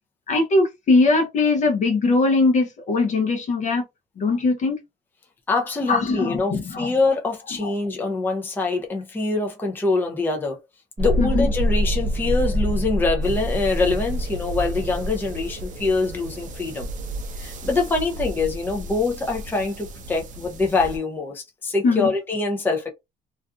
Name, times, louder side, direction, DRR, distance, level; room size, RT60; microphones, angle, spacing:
voice 1, 0.3-3.8 4.2-4.8 5.9-6.9 7.6-7.7 11.2-11.5 21.8-22.1, left 3 dB, 45° left, 0.7 m, -20 dB
voice 2, 5.5-10.6 11.0-16.9 17.4-22.9, left 3 dB, 10° left, 0.5 m, -24 dB
Thunderstorm, 11.0-18.4, equal, 35° right, 1.0 m, -26 dB
sound 1, 13.2-21.0, right 1 dB, 50° right, 0.6 m, -36 dB
2.4 x 2.3 x 2.4 m
cardioid pair, 110°, 17 cm